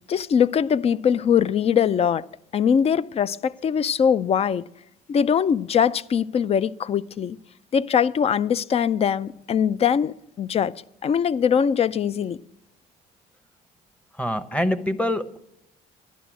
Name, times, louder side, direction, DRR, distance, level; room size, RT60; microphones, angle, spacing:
voice 1, 0.1-2.2 2.5-4.6 5.1-7.4 7.7-10.7 11.0-12.4, left 7 dB, 35° left, 0.4 m, -22 dB
voice 2, 14.2-15.4, left 1 dB, 5° left, 0.9 m, -25 dB
12.0 x 11.0 x 6.1 m
cardioid pair, 110°, 17 cm